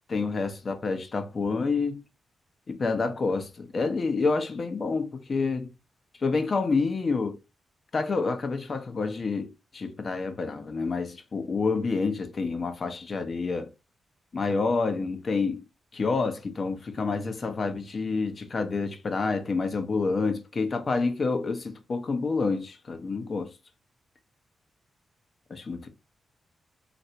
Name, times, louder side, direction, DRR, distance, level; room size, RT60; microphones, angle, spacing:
voice 1, 0.1-2.0 2.7-5.7 6.2-7.4 7.9-13.7 14.3-15.6 15.9-23.5 25.5-25.9, left 4 dB, 50° left, 0.7 m, -28 dB
3.2 x 2.5 x 2.7 m
cardioid pair, 60°, 0 cm